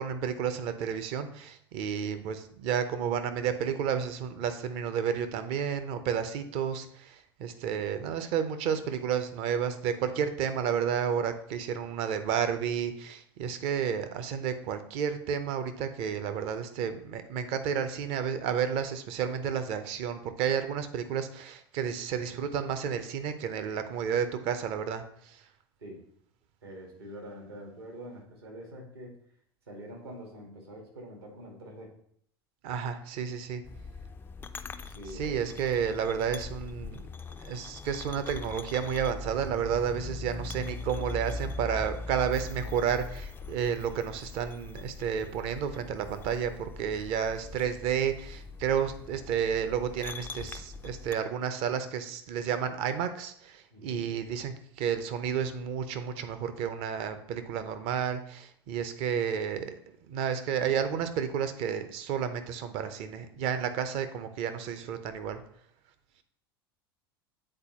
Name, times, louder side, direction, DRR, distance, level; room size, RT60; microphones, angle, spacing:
voice 1, 0.0-25.4 32.6-33.6 35.1-37.1 37.4-59.7 60.1-65.4, right 8 dB, 45° right, 9 dB, 0.7 m, -31 dB
voice 2, 26.6-29.1 29.7-31.9 34.8-35.5 53.7-54.0, equal, 75° right, 1 dB, 1.7 m, -45 dB
sound 1, 33.6-51.1, left 3 dB, 15° left, 0.3 m, -41 dB
8.8 x 4.0 x 2.9 m, 0.66 s
figure-of-eight pair, 80°, 13 cm